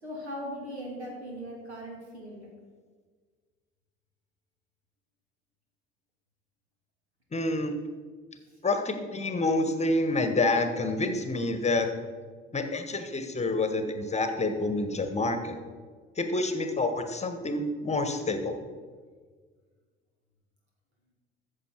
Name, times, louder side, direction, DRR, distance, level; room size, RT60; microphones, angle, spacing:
voice 1, 0.0-2.5, equal, 80° right, -1 dB, 2.7 m, -39 dB
voice 2, 7.3-7.8 8.6-11.9 12.5-15.6 16.2-18.5, left 2 dB, 20° left, 7 dB, 1.2 m, -28 dB
14.0 x 6.7 x 4.6 m, 1.6 s
figure-of-eight pair, 65°, 32 cm